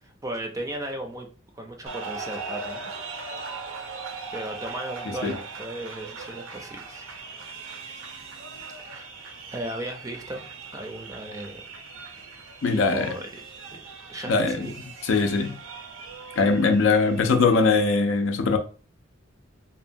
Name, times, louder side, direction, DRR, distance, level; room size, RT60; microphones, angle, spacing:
voice 1, 0.0-1.3 1.5-2.8 4.3-7.0 8.8-9.1 9.5-10.4 10.7-11.6 12.7-13.4 13.7-13.8 14.1-14.7, right 1 dB, 15° right, 0.4 m, -36 dB
sound 1, 1.9-17.9, right 4 dB, 80° right, 0.5 m, -40 dB
voice 2, 12.6-13.1 14.3-14.7 15.0-15.6 16.4-18.6, left 4 dB, 70° left, 0.4 m, -21 dB
2.8 x 2.1 x 2.5 m
head